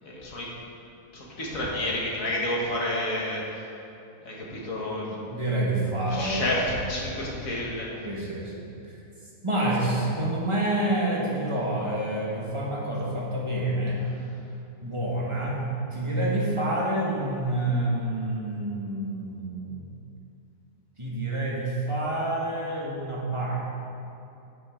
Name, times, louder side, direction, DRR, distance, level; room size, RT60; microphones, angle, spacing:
voice 1, 0.0-0.5 1.1-3.7 4.2-5.2 6.1-7.9, left 1 dB, 60° left, -4 dB, 2.1 m, -30 dB
voice 2, 5.3-6.5 8.0-8.6 9.4-14.1 14.8-15.6 15.9-19.8 21.0-23.6, right 1 dB, 20° right, -5 dB, 1.7 m, -28 dB
11.5 x 7.6 x 3.8 m, 2.7 s
omnidirectional pair, 1.6 m